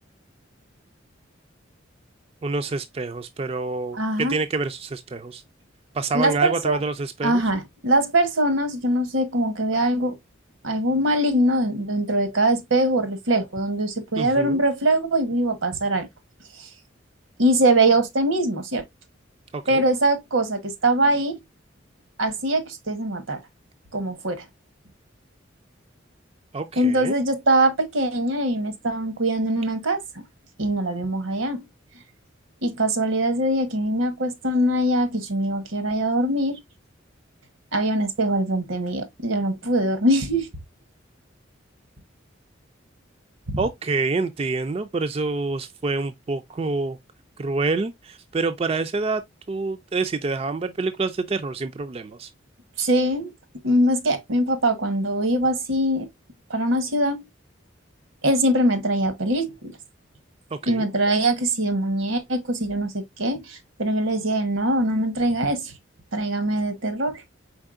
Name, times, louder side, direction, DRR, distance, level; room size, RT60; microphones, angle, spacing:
voice 1, 2.4-5.4 5.9-7.4 14.2-14.6 19.5-19.8 26.5-27.2 43.6-47.0 47.4-49.2 49.5-52.3 60.5-60.9, right 3 dB, 30° right, 0.3 m, -27 dB
voice 2, 3.9-4.4 6.1-6.8 7.2-10.2 10.6-16.1 16.6-16.7 17.4-18.8 19.7-21.4 22.2-23.4 23.9-24.4 26.8-30.2 30.6-31.6 32.6-36.6 37.7-40.5 43.5-43.6 52.8-53.3 53.6-56.1 56.5-57.2 58.2-59.7 60.7-65.7 66.1-67.2, right 1 dB, 80° right, 1.1 m, -22 dB
4.6 x 4.1 x 2.4 m
head